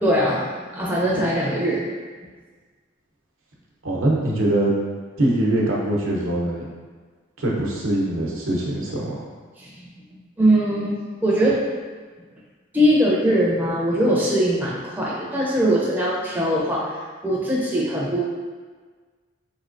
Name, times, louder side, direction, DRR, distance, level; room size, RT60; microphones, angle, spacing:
voice 1, 0.0-1.8 9.6-9.9 10.4-11.6 12.7-16.9 17.2-18.2, equal, 10° right, -5 dB, 0.5 m, -21 dB
voice 2, 3.8-4.7 5.2-6.7 7.4-9.2, right 1 dB, 90° right, -4 dB, 0.8 m, -22 dB
3.7 x 3.2 x 2.5 m, 1.5 s
head